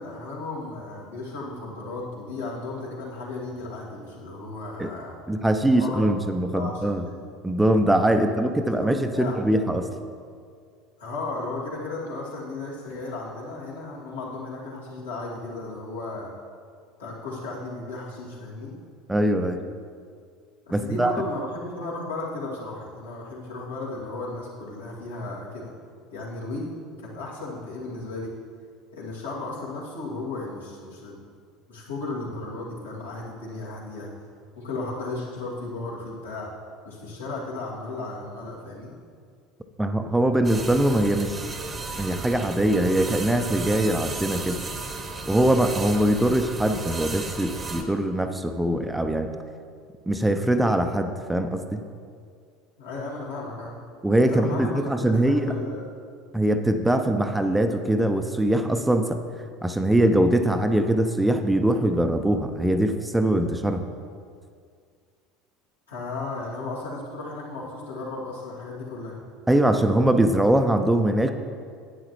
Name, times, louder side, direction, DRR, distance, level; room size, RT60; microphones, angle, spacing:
voice 1, 0.0-5.2 5.8-6.2 6.5-7.1 8.2-9.4 11.0-16.3 17.0-18.8 20.7-25.7 26.1-28.3 28.9-31.2 31.7-34.1 34.6-36.5 36.8-38.9 52.8-53.8 54.3-55.9 65.9-69.2, left 2 dB, 80° left, -7 dB, 2.4 m, -35 dB
voice 2, 5.3-7.1 7.4-9.9 19.1-19.6 20.7-21.1 39.8-41.5 42.0-44.6 45.3-49.3 50.1-51.8 54.0-55.5 56.3-59.2 59.6-63.9 69.5-71.3, right 1 dB, 5° right, 7 dB, 0.6 m, -22 dB
sound 1, 40.4-47.8, right 3 dB, 20° right, 0.9 m, -34 dB
11.5 x 9.3 x 3.1 m, 2.2 s
figure-of-eight pair, 70°, 0 cm